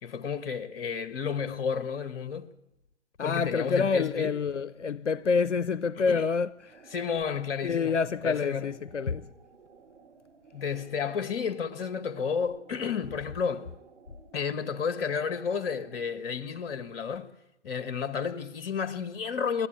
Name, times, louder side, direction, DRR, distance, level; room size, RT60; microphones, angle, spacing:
voice 1, 0.0-2.5 3.2-4.4 6.1-6.2 6.9-7.9 8.2-8.7 10.5-13.7 14.3-17.3 17.6-19.7, left 6 dB, 55° left, 1.6 m, -31 dB
voice 2, 3.2-6.9 7.6-9.3, left 5 dB, 90° left, 0.7 m, -27 dB
sound 1, 6.6-16.2, right 5 dB, 60° right, 7.6 m, -57 dB
26.5 x 12.5 x 8.8 m
figure-of-eight pair, 125°, 35 cm